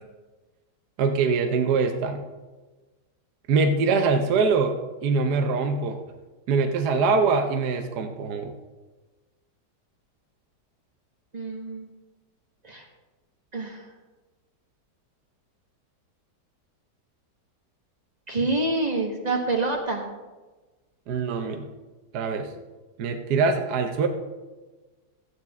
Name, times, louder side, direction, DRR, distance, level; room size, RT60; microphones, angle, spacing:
voice 1, 1.0-2.2 3.5-4.7 5.0-6.0 6.5-8.5 21.1-21.7 22.1-22.5 23.0-24.1, right 4 dB, 75° right, 5 dB, 1.3 m, -23 dB
voice 2, 11.3-11.9 12.6-12.9 13.5-13.8 18.3-20.0, right 2 dB, 25° right, 1 dB, 1.2 m, -27 dB
13.0 x 9.3 x 3.5 m, 1.2 s
omnidirectional pair, 1.8 m